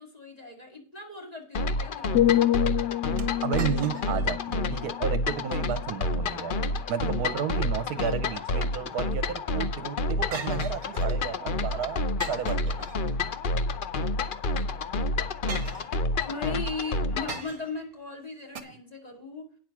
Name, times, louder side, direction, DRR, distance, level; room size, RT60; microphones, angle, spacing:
voice 1, 0.0-2.3 16.3-19.5, left 3 dB, 25° left, 0 dB, 2.5 m, -38 dB
sound 1, 1.5-17.4, left 2 dB, 60° left, 0.5 m, -29 dB
sound 2, 2.1-6.1 6.5-6.8, left 12 dB, 85° left, 1.3 m, -28 dB
sound 3, 3.2-4.4 4.7-4.8 5.4-5.8 7.7-8.6 10.3-11.3 12.2-13.4 14.5-14.6 15.5-16.3 17.3-17.9 18.5-18.6, right 5 dB, 55° right, 1.4 m, -41 dB
voice 2, 3.4-6.6 6.9-12.0 12.3-12.8, right 8 dB, 75° right, 11 dB, 1.3 m, -32 dB
9.3 x 6.3 x 6.0 m, 0.44 s
omnidirectional pair, 1.7 m